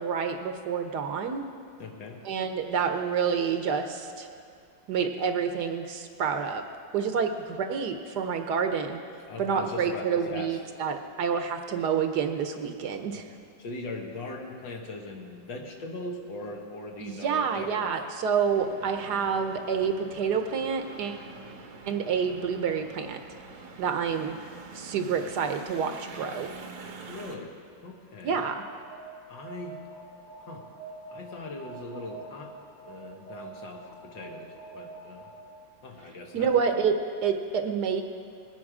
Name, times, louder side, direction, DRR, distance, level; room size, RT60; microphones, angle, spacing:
voice 1, 0.0-1.5 2.2-4.3 4.9-6.6 6.9-9.0 9.4-13.3 17.0-21.2 21.9-23.2 23.8-24.4 24.7-26.5 28.2-28.6 36.3-38.0, right 6 dB, 65° right, 6 dB, 1.2 m, -28 dB
voice 2, 1.8-2.2 9.3-10.6 13.1-18.0 27.1-27.6 27.8-28.4 29.3-29.8 30.4-30.7 31.1-32.5 32.8-35.3 35.8-36.6, left 2 dB, 75° left, 1 dB, 2.1 m, -40 dB
sound 1, 18.5-27.4, right 4 dB, 90° right, 1.8 m, -45 dB
Alarm, 28.5-35.6, right 3 dB, 45° left, 2.3 m, -46 dB
20.5 x 9.7 x 4.9 m, 2.3 s
omnidirectional pair, 2.1 m